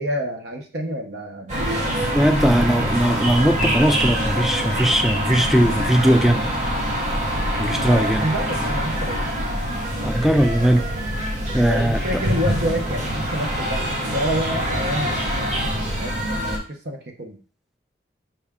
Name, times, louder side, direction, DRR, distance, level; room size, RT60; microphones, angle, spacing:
voice 1, 0.0-1.9 7.8-9.2 11.7-13.9 14.1-15.5 16.0-17.4, equal, 60° right, 3 dB, 0.7 m, -28 dB
sound 1, 1.5-16.6, equal, 40° right, 1.1 m, -24 dB
voice 2, 2.1-6.4 7.6-8.2 10.0-10.9 11.5-12.0, right 1 dB, ahead, 6 dB, 0.3 m, -19 dB
5.6 x 2.2 x 3.5 m, 0.38 s
head